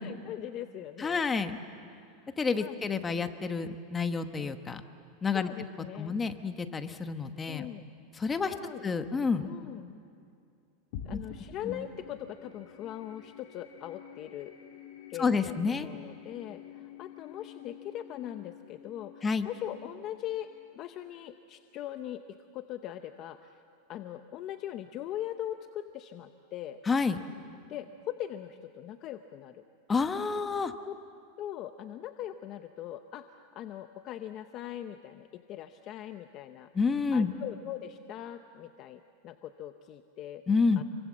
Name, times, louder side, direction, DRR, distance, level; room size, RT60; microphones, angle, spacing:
voice 1, 0.0-1.2 1.9-2.8 5.3-6.1 7.5-7.8 8.5-8.8 9.4-10.0 11.0-14.5 15.1-23.6 23.9-26.8 27.7-29.6 31.4-36.7 37.1-40.4 40.8-40.9, left 11 dB, 35° left, 8 dB, 0.8 m, -41 dB
voice 2, 1.0-1.6 2.4-4.8 5.2-5.5 5.9-7.7 8.1-8.5 8.8-9.5 11.1-11.2 11.6-11.8 15.2-15.9 19.2-19.5 26.9-27.2 29.9-30.7 36.7-37.3 40.5-40.8, left 4 dB, 15° left, 9 dB, 1.0 m, -29 dB
sound 1, 10.9-21.6, left 7 dB, 60° left, 3.0 m, -49 dB
29.0 x 23.5 x 7.4 m, 2.4 s
supercardioid pair, 150°, 0 cm